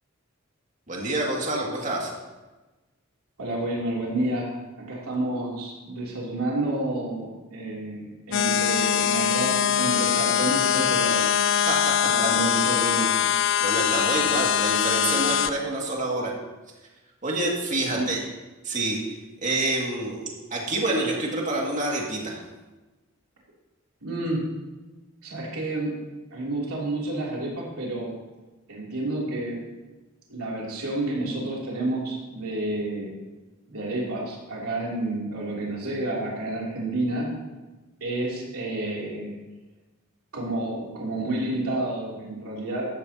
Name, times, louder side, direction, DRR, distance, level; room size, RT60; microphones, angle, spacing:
voice 1, 0.9-2.1 11.7-11.9 12.2-12.4 13.6-16.3 17.2-18.2 18.6-19.0 19.4-22.4, right 2 dB, 35° right, -2 dB, 2.2 m, -27 dB
voice 2, 3.4-11.4 12.0-13.1 17.9-18.1 24.0-24.4 25.2-25.9 26.3-28.1 28.7-29.6 30.3-33.1 33.7-37.3 38.0-39.3 40.3-42.8, right 2 dB, 85° right, -4 dB, 3.1 m, -30 dB
sound 1, 8.3-15.5, left 8 dB, 60° left, 0.5 m, -22 dB
14.0 x 11.5 x 2.9 m, 1.2 s
head